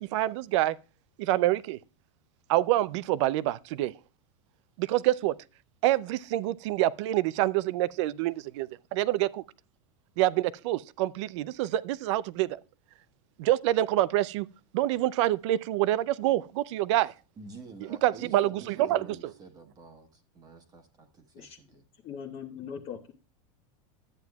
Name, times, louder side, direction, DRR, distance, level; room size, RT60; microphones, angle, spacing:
voice 1, 0.1-0.7 1.2-1.8 2.5-3.9 4.8-5.3 5.8-9.4 10.2-12.5 13.4-14.5 14.7-17.1 17.8-19.3, right 14 dB, 60° right, 0.5 m, -26 dB
voice 2, 17.4-21.8, right 3 dB, 20° right, 1.2 m, -49 dB
voice 3, 21.3-23.1, left 7 dB, 35° left, 0.9 m, -41 dB
13.0 x 9.0 x 2.3 m
supercardioid pair, 155°, 17 cm